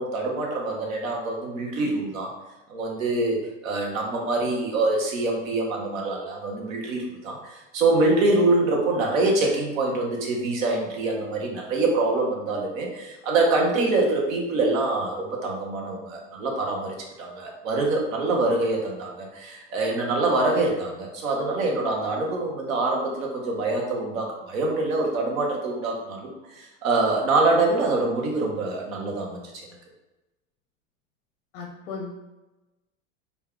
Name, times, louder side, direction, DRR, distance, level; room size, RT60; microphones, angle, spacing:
voice 1, 0.0-2.3 2.7-3.4 3.6-29.5, right 2 dB, 85° right, 0 dB, 1.2 m, -25 dB
voice 2, 31.5-32.3, left 4 dB, 80° left, 1 dB, 0.8 m, -36 dB
4.2 x 2.4 x 3.6 m, 1.0 s
hypercardioid pair, 95°, 40 cm